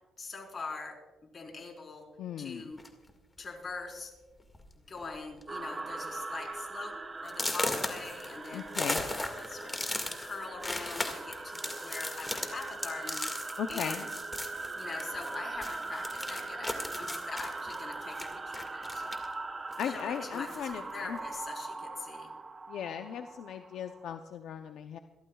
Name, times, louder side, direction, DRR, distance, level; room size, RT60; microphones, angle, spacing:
voice 1, 0.2-0.9 1.3-2.0 2.4-2.8 3.4-4.1 4.9-6.9 7.2-8.7 9.0-9.8 10.2-13.3 13.7-14.1 14.7-19.2 19.8-22.3, left 4 dB, 35° left, 1 dB, 4.3 m, -42 dB
voice 2, 2.2-2.7 8.5-9.0 13.6-14.0 19.8-21.2 22.7-25.0, left 8 dB, 75° left, 7 dB, 0.6 m, -37 dB
sound 1, 2.8-3.1 3.9-4.0 4.4-4.7 5.0-5.4 5.8-5.9 6.4-6.5 7.3-15.3 15.6-19.3 19.7-20.7, left 2 dB, 15° left, 1.9 m, -37 dB
sound 2, 5.5-24.1, right 3 dB, 25° right, 0.9 m, -41 dB
28.0 x 13.5 x 2.3 m, 1.2 s
cardioid pair, 90°, 0 cm